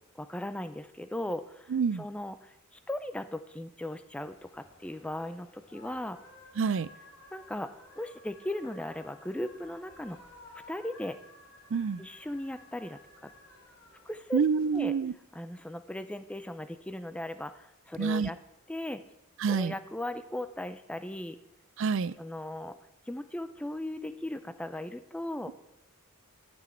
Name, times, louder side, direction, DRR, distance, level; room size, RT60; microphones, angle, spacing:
voice 1, 0.1-1.7 2.0-6.2 7.3-10.2 10.7-11.2 12.0-13.3 14.1-14.4 14.7-14.9 15.3-18.4 18.7-19.0 19.5-21.4 22.2-22.7 23.1-25.5, left 1 dB, 5° left, 11 dB, 0.4 m, -37 dB
voice 2, 1.7-2.1 6.6-6.9 11.7-12.0 14.3-15.1 18.0-18.3 19.4-19.7 21.8-22.1, right 5 dB, 60° right, 17 dB, 0.4 m, -27 dB
sound 1, 4.3-14.8, left 2 dB, 90° left, 3.5 m, -55 dB
17.0 x 6.2 x 4.4 m, 0.82 s
head